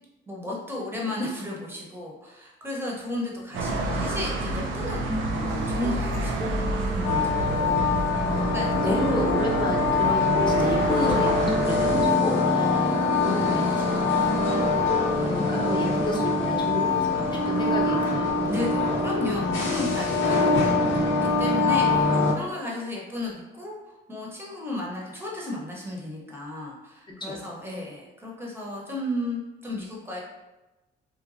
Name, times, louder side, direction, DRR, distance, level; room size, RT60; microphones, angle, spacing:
voice 1, 0.3-7.8 8.1-9.1 12.6-12.7 18.5-20.8 21.2-23.7 24.1-30.2, left 1 dB, 10° right, -3 dB, 0.8 m, -34 dB
sound 1, 3.5-12.1, right 2 dB, 80° right, 0.4 m, -30 dB
sound 2, 3.7-18.3, left 1 dB, 5° left, 0.3 m, -33 dB
sound 3, 7.0-22.3, left 3 dB, 75° left, 0.6 m, -24 dB
voice 2, 7.4-7.9 8.3-18.7 19.5-19.8 27.2-27.7, left 1 dB, 25° left, -1 dB, 0.7 m, -32 dB
3.0 x 2.2 x 2.5 m, 1.0 s
cardioid pair, 90°, 20 cm